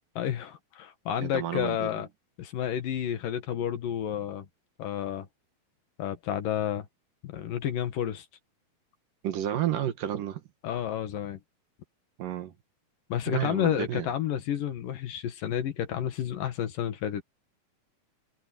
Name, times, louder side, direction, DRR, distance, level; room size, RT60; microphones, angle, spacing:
voice 1, 0.2-2.1 2.4-4.5 4.8-5.3 6.0-6.9 7.2-8.3 10.6-11.4 13.1-17.2, left 10 dB, 65° left, 3.1 m, -30 dB
voice 2, 1.2-2.0 9.2-10.4 12.2-12.5 13.3-14.1, right 11 dB, 65° right, 2.9 m, -31 dB
omnidirectional pair, 4.3 m